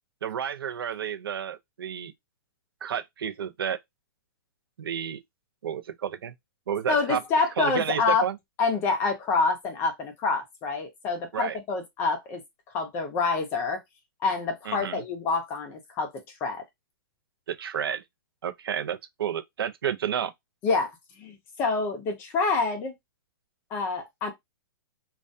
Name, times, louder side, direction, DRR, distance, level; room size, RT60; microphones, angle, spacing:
voice 1, 0.2-2.1 2.8-3.8 4.8-5.2 5.6-6.3 6.7-7.2 7.6-8.4 11.3-11.6 14.7-15.0 17.5-18.0 18.4-20.3, right 8 dB, 85° right, 0.5 m, -31 dB
voice 2, 6.9-8.2 8.6-12.4 12.7-13.8 14.2-16.1 16.4-16.6 20.6-20.9 21.2-22.9 23.7-24.3, left 4 dB, 20° left, 0.5 m, -27 dB
2.3 x 2.2 x 2.6 m
hypercardioid pair, 165°, 12 cm